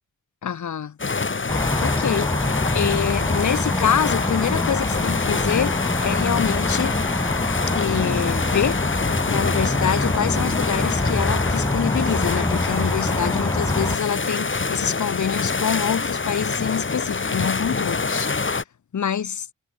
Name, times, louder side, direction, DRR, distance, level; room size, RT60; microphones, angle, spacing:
voice 1, 0.4-1.0 1.8-2.3 2.7-6.9 7.8-8.8 9.3-18.3 18.9-19.5, left 8 dB, 60° left, 1.0 m, -26 dB
sound 1, 1.0-18.6, left 4 dB, 35° left, 2.0 m, -26 dB
sound 2, 1.5-14.0, left 1 dB, 10° left, 0.8 m, -25 dB
wide cardioid pair, 90°, 33 cm